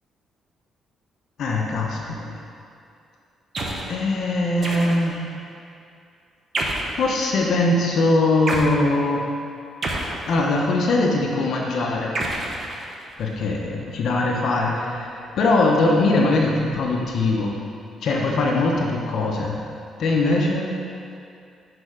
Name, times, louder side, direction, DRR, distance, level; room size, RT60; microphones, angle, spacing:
voice 1, 1.4-2.3 3.9-5.3 7.0-9.3 10.3-12.2 13.2-17.5 18.0-19.6 20.0-20.7, left 2 dB, 70° left, -1 dB, 0.8 m, -21 dB
sound 1, 3.5-3.9 4.6-5.2 6.5-7.0 8.5-8.8 9.8-10.7 12.1-13.2, right 2 dB, 50° right, 0.9 m, -28 dB
6.4 x 4.4 x 5.0 m, 2.5 s
cardioid pair, 90°, 0 cm